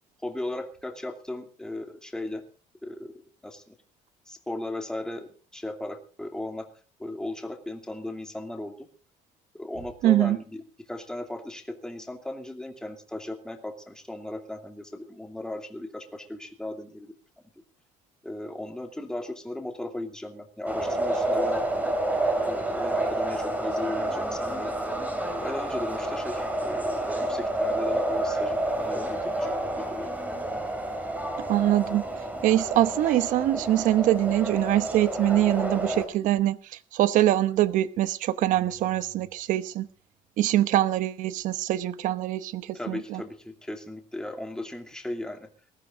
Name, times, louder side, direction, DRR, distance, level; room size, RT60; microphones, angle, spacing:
voice 1, 0.2-2.4 2.8-3.1 3.4-3.7 4.3-6.7 7.0-8.9 9.5-10.6 10.9-17.1 18.2-21.6 22.5-24.7 25.4-30.1 42.7-45.5, left 1 dB, 5° left, 2.6 m, -36 dB
voice 2, 10.0-10.4 31.5-32.0 32.4-39.9 40.4-43.2, right 13 dB, 65° right, 1.0 m, -24 dB
sound 1, 20.7-36.1, right 1 dB, 10° right, 3.3 m, -29 dB
19.5 x 14.5 x 3.8 m
cardioid pair, 135°, 14 cm